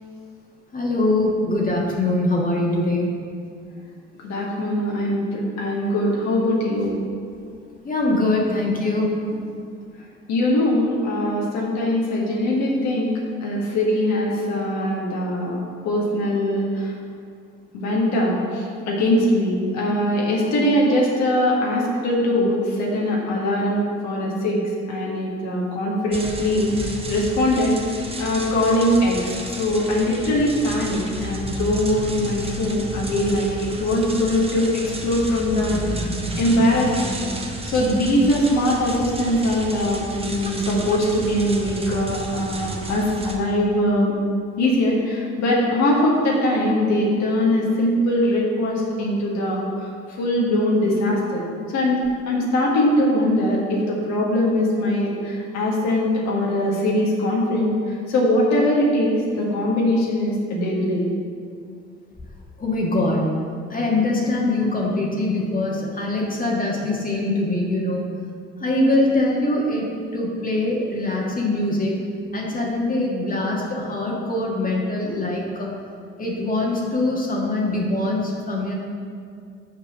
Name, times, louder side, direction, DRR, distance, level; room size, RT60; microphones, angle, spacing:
voice 1, 0.7-3.1 7.8-9.1 62.6-63.3 63.7-68.0 68.6-69.9 70.1-72.0 72.3-75.7 76.2-78.7, left 2 dB, 30° left, -2 dB, 1.5 m, -23 dB
voice 2, 4.2-6.9 10.3-13.1 13.4-15.6 15.8-16.9 17.7-24.6 24.9-27.8 28.2-36.1 36.4-37.2 37.6-44.1 44.6-49.6 50.2-51.4 51.7-57.7 58.1-61.0, left 1 dB, 65° left, -3 dB, 1.6 m, -21 dB
sound 1, 26.1-43.4, right 1 dB, 20° right, 1.1 m, -32 dB
6.0 x 4.8 x 5.9 m, 2.3 s
hypercardioid pair, 55°, 30 cm